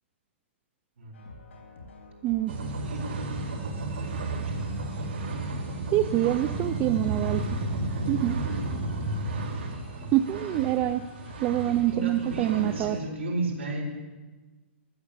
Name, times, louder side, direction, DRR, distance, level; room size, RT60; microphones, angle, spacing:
sound 1, 1.1-12.9, left 2 dB, 80° left, 3.6 m, -47 dB
sound 2, 2.5-13.0, right 2 dB, 65° right, 4.2 m, -33 dB
voice 1, 2.5-5.1 8.5-8.7 9.1-9.5 11.8-13.8, right 2 dB, 80° right, -1 dB, 4.5 m, -35 dB
voice 2, 5.9-7.4 8.1-8.4 10.1-11.0 11.4-13.0, right 14 dB, 25° right, 11 dB, 0.4 m, -25 dB
14.0 x 7.1 x 8.2 m, 1.3 s
hypercardioid pair, 150°, 7 cm